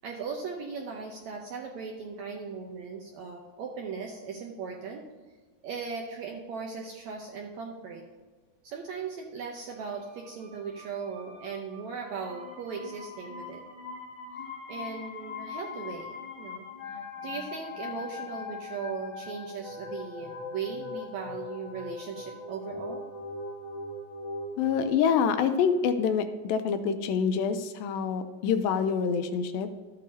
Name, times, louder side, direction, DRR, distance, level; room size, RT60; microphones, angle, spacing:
voice 1, 0.0-5.0 5.6-8.0 8.6-13.6 14.3-14.4 14.7-23.0, right 5 dB, 75° right, 0 dB, 1.7 m, -38 dB
sound 1, 9.7-24.9, left 4 dB, 20° left, 0.7 m, -41 dB
voice 2, 24.6-29.8, left 6 dB, 85° left, 9 dB, 2.4 m, -26 dB
12.5 x 8.3 x 2.7 m, 1.3 s
omnidirectional pair, 4.1 m